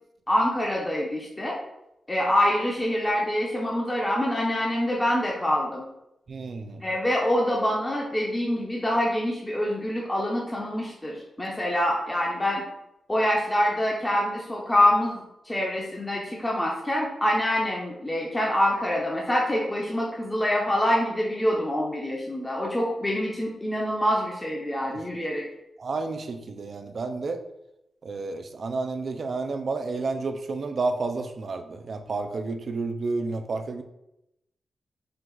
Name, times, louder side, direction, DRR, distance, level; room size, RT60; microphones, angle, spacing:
voice 1, 0.3-1.6 2.1-5.8 6.8-12.6 13.1-25.4, left 1 dB, 15° left, -3 dB, 0.7 m, -25 dB
voice 2, 6.3-6.9 11.6-11.7 25.8-27.4 28.0-33.8, right 3 dB, 55° right, 7 dB, 0.4 m, -30 dB
4.5 x 2.4 x 3.8 m, 0.86 s
wide cardioid pair, 100°, 0 cm